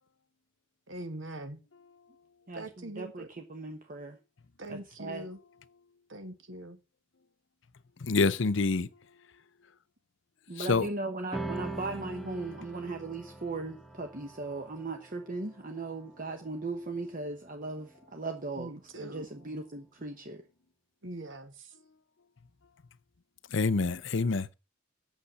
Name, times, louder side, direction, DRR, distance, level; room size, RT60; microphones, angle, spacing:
voice 1, 0.9-1.6 2.5-3.3 4.6-5.4 6.1-6.8 18.6-19.3 21.0-21.7, right 1 dB, 65° right, 1.7 m, -42 dB
voice 2, 2.5-4.2 4.7-5.3 10.5-18.7 19.0-20.4, right 3 dB, 40° right, 1.2 m, -38 dB
voice 3, 8.0-8.9 10.6-10.9 23.5-24.5, left 4 dB, 65° left, 0.7 m, -27 dB
sound 1, 11.3-18.1, right 2 dB, ahead, 1.0 m, -43 dB
8.7 x 7.2 x 7.6 m
head